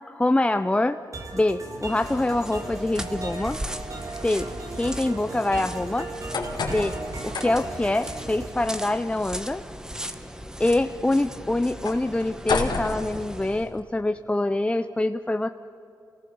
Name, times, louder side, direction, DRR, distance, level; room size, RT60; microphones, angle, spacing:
voice 1, 0.1-1.0 1.3-3.6 4.2-4.5 4.7-6.1 6.7-7.0 7.2-9.6 10.6-15.5, left 2 dB, 15° left, 9 dB, 0.6 m, -25 dB
sound 1, 1.1-8.5, right 2 dB, 45° right, 3.1 m, -37 dB
sound 2, 1.8-13.7, equal, 10° right, 1.2 m, -39 dB
sound 3, 6.0-13.8, left 4 dB, 75° left, 3.2 m, -34 dB
28.5 x 18.0 x 7.0 m, 2.8 s
wide cardioid pair, 90°, 8 cm